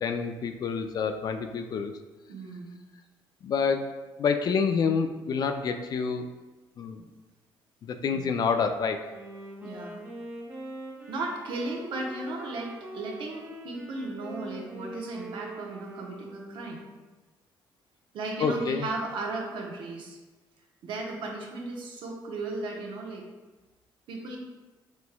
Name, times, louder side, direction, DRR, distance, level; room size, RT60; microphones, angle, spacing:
voice 1, 0.0-1.9 3.4-3.9 4.2-6.3 6.8-7.0 7.8-9.1 18.4-18.9, left 5 dB, 50° left, 7 dB, 0.3 m, -28 dB
voice 2, 2.3-2.7 8.1-8.2 9.6-10.0 11.1-16.8 18.1-20.2 20.8-23.3 24.1-24.4, right 2 dB, 70° right, 0 dB, 0.7 m, -35 dB
Wind instrument woodwind instrument, 9.0-17.0, right 1 dB, 35° right, 1.4 m, -43 dB
4.3 x 3.3 x 2.2 m, 1.2 s
cardioid pair, 85°, 9 cm